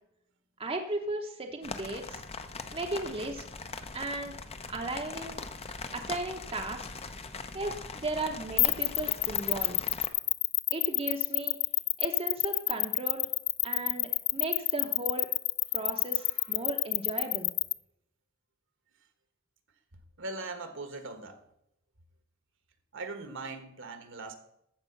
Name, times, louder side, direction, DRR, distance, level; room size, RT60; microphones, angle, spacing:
voice 1, 0.6-2.2 2.7-3.4 3.9-4.4 4.7-5.4 5.9-6.9 7.5-9.8 10.7-11.6 12.0-13.3 13.6-15.3 15.7-17.5, right 2 dB, 30° right, 4 dB, 0.9 m, -35 dB
sound 1, 1.6-10.1, left 4 dB, 30° left, 0.7 m, -41 dB
sound 2, 8.6-17.7, left 21 dB, 60° left, 0.4 m, -27 dB
voice 2, 16.2-16.5 20.2-21.4 22.9-24.3, right 3 dB, 65° right, 8 dB, 1.4 m, -40 dB
14.5 x 5.0 x 7.0 m, 0.78 s
head